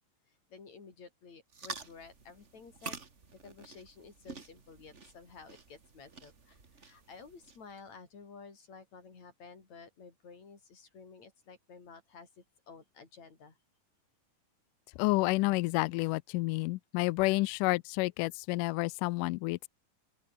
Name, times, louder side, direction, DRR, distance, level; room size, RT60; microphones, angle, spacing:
voice 1, 0.5-3.0 3.3-13.6, left 5 dB, 50° left, 6.1 m, -53 dB
sound 1, 1.5-7.8, right 4 dB, 30° right, 1.4 m, -48 dB
voice 2, 15.0-19.7, left 22 dB, 85° left, 1.9 m, -30 dB
open air
omnidirectional pair, 4.3 m